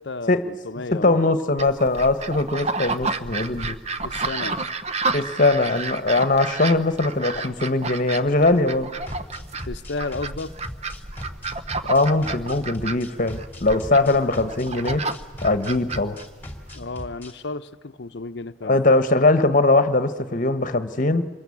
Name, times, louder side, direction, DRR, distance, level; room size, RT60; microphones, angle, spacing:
voice 1, 0.0-1.3 4.0-4.6 9.6-10.5 16.7-18.8, left 3 dB, 65° left, 0.7 m, -33 dB
voice 2, 0.9-3.8 5.1-8.9 11.8-15.0 15.4-16.2 18.6-21.3, left 2 dB, 45° left, 1.2 m, -21 dB
sound 1, 1.6-16.8, right 3 dB, 35° right, 0.9 m, -31 dB
sound 2, 9.1-17.3, left 1 dB, 10° left, 2.8 m, -38 dB
26.0 x 22.0 x 8.5 m
head